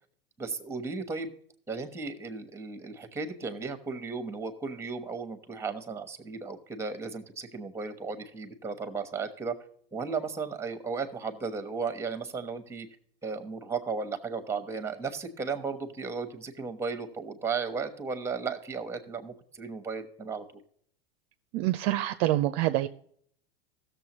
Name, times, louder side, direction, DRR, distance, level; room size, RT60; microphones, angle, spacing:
voice 1, 0.4-1.3 1.7-9.6 9.9-12.9 13.2-20.4, right 4 dB, 10° right, 1.1 m, -35 dB
voice 2, 21.5-22.9, right 15 dB, 50° right, 0.5 m, -26 dB
16.5 x 6.8 x 3.0 m
hypercardioid pair, 95°, 30 cm